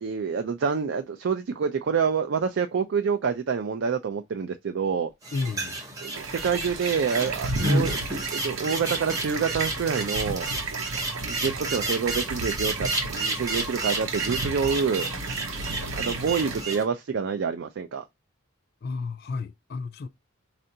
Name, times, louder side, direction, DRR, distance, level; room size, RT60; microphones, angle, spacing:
voice 1, 0.0-5.1 6.0-8.1 8.3-10.5 11.2-15.1 16.0-18.0, right 6 dB, 60° right, 0.4 m, -27 dB
sound 1, 5.2-16.8, right 1 dB, 15° right, 0.8 m, -31 dB
voice 2, 5.3-5.8 18.8-20.1, left 4 dB, 50° left, 0.3 m, -32 dB
sound 2, 6.2-16.6, right 3 dB, 80° right, 0.8 m, -33 dB
4.3 x 2.5 x 2.6 m
head